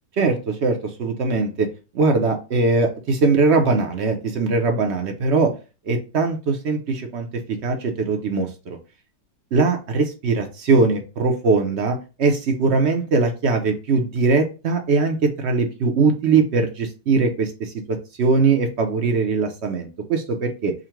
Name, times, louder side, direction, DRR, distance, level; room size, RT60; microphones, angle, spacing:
voice 1, 0.2-1.7 1.9-5.5 5.9-7.3 7.6-8.8 9.5-20.7, right 4 dB, 55° right, 4 dB, 0.8 m, -21 dB
3.8 x 2.2 x 4.4 m, 0.31 s
omnidirectional pair, 1.7 m